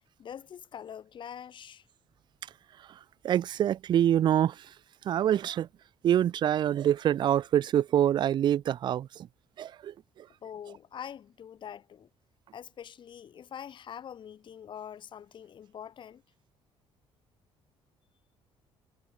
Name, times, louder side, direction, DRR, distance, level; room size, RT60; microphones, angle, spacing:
voice 1, 0.2-1.8 10.4-12.1 12.5-16.2, left 9 dB, 55° left, 3.9 m, -44 dB
voice 2, 2.8-4.8 5.0-5.7 6.0-9.3 9.6-10.3, right 10 dB, 50° right, 0.4 m, -26 dB
cardioid pair, 85°, 10 cm